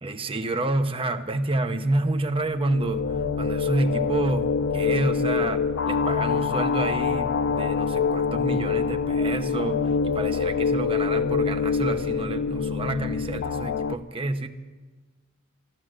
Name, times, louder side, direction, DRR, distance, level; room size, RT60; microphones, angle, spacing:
voice 1, 0.0-14.5, right 2 dB, 25° right, 0.8 m, -29 dB
sound 1, 2.4-13.9, left 5 dB, 60° left, 0.4 m, -25 dB
13.5 x 12.5 x 7.7 m
head